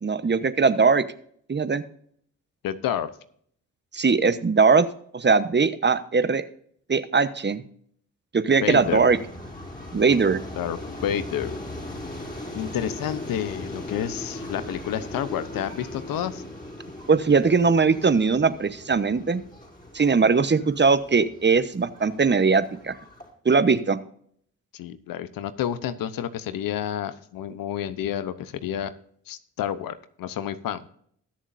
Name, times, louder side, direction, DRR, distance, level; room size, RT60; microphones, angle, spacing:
voice 1, 0.0-1.0 1.5-1.8 3.9-4.9 5.1-6.4 6.9-7.6 8.3-9.2 9.9-10.4 17.1-19.4 19.9-22.9 23.4-24.0, right 4 dB, 30° right, 12 dB, 1.0 m, -20 dB
voice 2, 2.6-3.1 8.6-9.1 10.6-11.6 12.5-16.4 24.7-28.9 29.3-30.8, left 10 dB, 90° left, 13 dB, 0.9 m, -30 dB
sound 1, 8.7-23.3, left 1 dB, 25° left, 5.0 m, -39 dB
20.5 x 7.2 x 2.6 m, 0.62 s
supercardioid pair, 55°, 33 cm